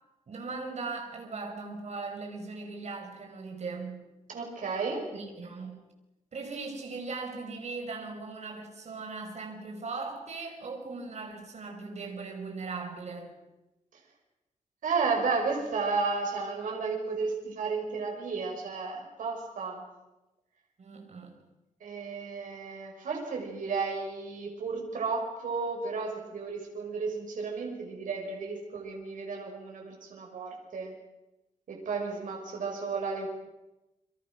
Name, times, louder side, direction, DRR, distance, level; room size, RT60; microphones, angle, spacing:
voice 1, 0.3-4.1 5.1-5.8 6.3-13.3 20.8-21.4, right 4 dB, 55° right, 5.8 m, -39 dB
voice 2, 4.3-5.1 14.8-19.8 21.8-30.9 31.7-33.3, right 4 dB, 85° right, 5.7 m, -33 dB
30.0 x 24.5 x 6.2 m
wide cardioid pair, 120°, 13 cm